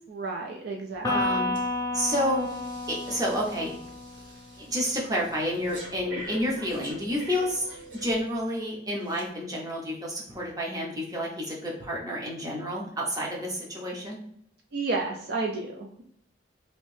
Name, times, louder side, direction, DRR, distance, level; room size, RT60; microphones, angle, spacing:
voice 1, 0.1-1.4 14.7-16.0, right 3 dB, 55° right, 0 dB, 0.4 m, -32 dB
Electric guitar, 1.0-4.6, left 2 dB, 20° left, 0.5 m, -31 dB
voice 2, 1.0-1.5 1.9-2.5 2.9-3.7 4.6-7.7 7.9-14.2, equal, 20° right, -3 dB, 0.8 m, -30 dB
Breathing, 1.5-1.7 2.1-8.5 9.1-9.2, right 2 dB, 80° right, 1.0 m, -45 dB
3.1 x 2.6 x 3.2 m, 0.69 s
head